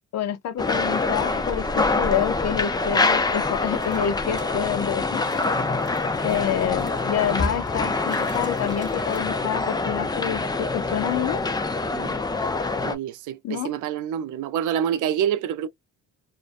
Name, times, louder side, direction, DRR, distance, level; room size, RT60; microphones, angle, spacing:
voice 1, 0.1-5.2 6.2-11.4 13.4-13.7, left 10 dB, 60° left, 0.6 m, -27 dB
sound 1, 0.6-12.9, left 3 dB, 15° left, 0.4 m, -25 dB
Water / Bathtub (filling or washing), 3.8-9.7, right 2 dB, 15° right, 1.1 m, -46 dB
voice 2, 12.8-15.7, right 9 dB, 85° right, 0.5 m, -27 dB
2.4 x 2.1 x 2.4 m
cardioid pair, 90°, 30 cm